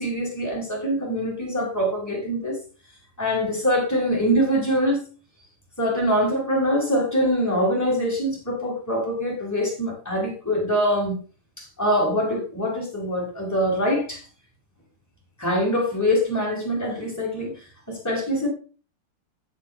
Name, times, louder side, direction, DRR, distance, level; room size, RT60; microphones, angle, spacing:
voice 1, 0.0-2.6 3.2-5.0 5.8-11.1 11.6-14.2 15.4-17.5 17.9-18.5, equal, 5° left, -3 dB, 7.3 m, -24 dB
17.5 x 10.0 x 2.4 m, 0.35 s
omnidirectional pair, 2.4 m